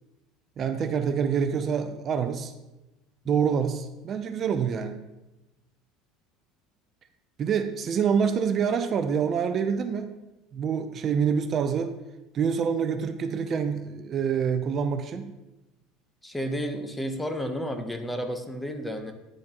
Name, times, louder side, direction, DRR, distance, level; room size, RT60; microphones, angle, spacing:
voice 1, 0.6-2.5 3.3-5.0 7.4-10.1 10.5-11.9 12.3-15.3, right 7 dB, 40° right, 8 dB, 0.5 m, -26 dB
voice 2, 16.2-19.1, equal, 5° left, 6 dB, 0.9 m, -31 dB
10.0 x 6.4 x 3.0 m, 1.0 s
supercardioid pair, 115°, 0 cm